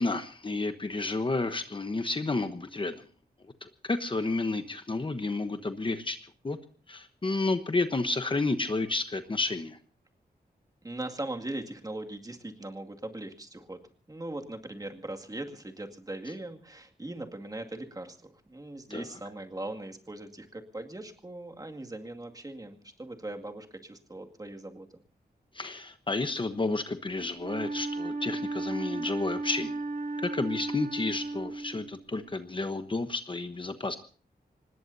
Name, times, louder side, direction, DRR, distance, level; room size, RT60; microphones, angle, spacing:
voice 1, 0.0-3.0 3.6-6.2 6.4-6.6 6.9-9.8 18.9-19.1 25.5-29.8 30.2-34.0, left 3 dB, 30° left, 9 dB, 1.1 m, -31 dB
voice 2, 10.8-13.8 14.1-24.9, right 2 dB, 20° right, 4 dB, 2.2 m, -40 dB
Wind instrument woodwind instrument, 27.4-32.1, right 2 dB, 55° right, 3.2 m, -35 dB
25.5 x 20.0 x 2.7 m, 0.39 s
wide cardioid pair, 130°, 17 cm